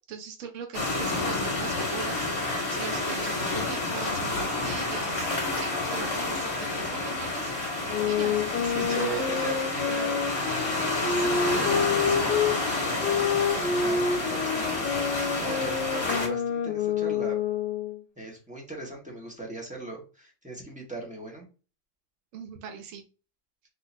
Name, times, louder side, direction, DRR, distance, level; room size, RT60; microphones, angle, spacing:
voice 1, 0.1-9.5 11.1-12.2 22.3-23.0, right 7 dB, 65° right, 5 dB, 0.7 m, -41 dB
sound 1, 0.7-16.3, left 2 dB, 35° left, 1.6 m, -29 dB
sound 2, 7.9-12.6 13.0-18.0, left 6 dB, 65° left, 1.3 m, -28 dB
voice 2, 8.7-10.4 13.5-17.4 18.2-21.4, right 3 dB, 5° right, -3 dB, 1.2 m, -38 dB
3.9 x 3.8 x 2.7 m, 0.34 s
omnidirectional pair, 2.1 m